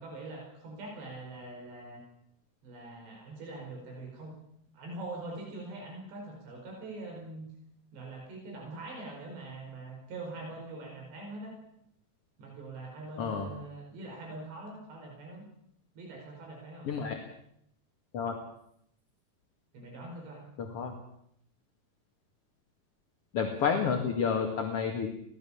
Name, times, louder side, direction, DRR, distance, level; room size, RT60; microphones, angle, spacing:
voice 1, 0.0-2.0 2.6-4.4 4.7-7.5 7.9-11.6 12.4-15.5 16.0-16.9 19.7-20.5, right 2 dB, 80° right, 1 dB, 7.1 m, -43 dB
voice 2, 16.9-17.2 18.1-18.4 20.7-20.9 23.3-25.1, left 6 dB, 45° left, 2 dB, 2.3 m, -29 dB
25.5 x 18.0 x 7.2 m, 0.74 s
omnidirectional pair, 4.9 m